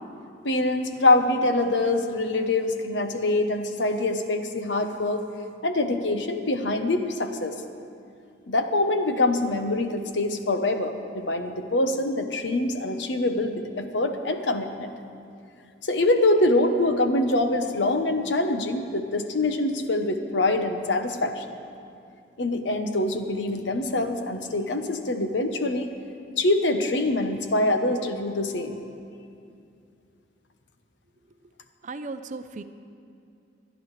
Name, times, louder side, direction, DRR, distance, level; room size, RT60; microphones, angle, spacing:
voice 1, 0.4-5.3 5.6-7.6 8.5-14.9 15.8-21.6 22.4-25.9 26.4-28.8, left 2 dB, 85° left, 7 dB, 1.0 m, -24 dB
voice 2, 31.8-32.6, right 3 dB, 45° right, 10 dB, 0.6 m, -36 dB
25.5 x 10.5 x 3.3 m, 2.5 s
head